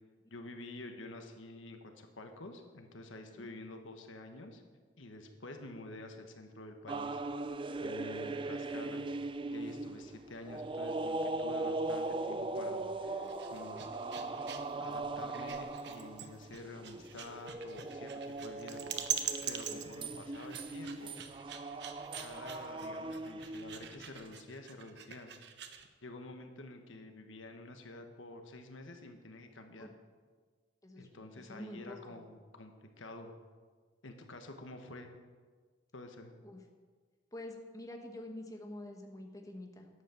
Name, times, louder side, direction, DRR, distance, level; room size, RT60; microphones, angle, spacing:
voice 1, 0.3-4.6 5.0-7.2 7.8-9.1 9.5-13.9 14.8-19.1 19.4-21.2 22.2-25.3 26.0-29.9 31.0-33.3 34.0-35.1 35.9-36.3, left 2 dB, 90° left, 5 dB, 1.4 m, -49 dB
sound 1, 6.9-24.3, right 2 dB, 25° right, 0.4 m, -39 dB
sound 2, 13.2-25.9, right 8 dB, 60° right, 1.0 m, -43 dB
voice 2, 19.7-20.0 29.8-29.9 30.8-31.2 31.5-32.2 36.4-36.6 37.3-39.9, left 1 dB, 20° left, 3 dB, 1.2 m, -47 dB
11.5 x 8.5 x 7.0 m, 1.5 s
head